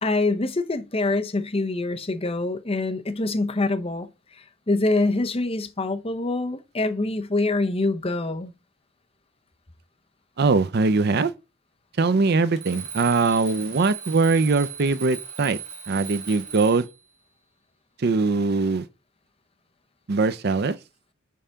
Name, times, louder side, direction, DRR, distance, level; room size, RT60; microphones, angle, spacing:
voice 1, 0.0-8.5, left 2 dB, 30° left, 0.8 m, -25 dB
voice 2, 10.4-11.3 12.0-15.6 15.9-16.8 18.0-18.9 20.1-20.8, right 4 dB, 50° right, 0.5 m, -21 dB
Alarm, 12.6-17.0, right 7 dB, 35° right, 1.9 m, -38 dB
5.5 x 4.9 x 5.6 m
head